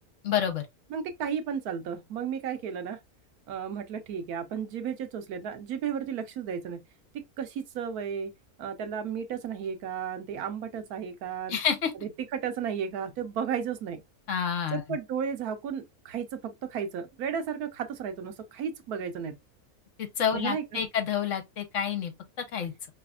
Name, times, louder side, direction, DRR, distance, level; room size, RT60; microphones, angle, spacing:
voice 1, 0.2-0.6 11.5-11.9 14.3-14.8 20.0-22.1 22.5-22.7, left 8 dB, 60° left, 1.2 m, -28 dB
voice 2, 0.9-3.0 3.5-6.8 7.1-8.3 8.6-11.6 12.0-14.0 14.7-19.4 20.3-20.9, right 7 dB, 90° right, 1.3 m, -34 dB
4.8 x 3.2 x 2.3 m
omnidirectional pair, 1.5 m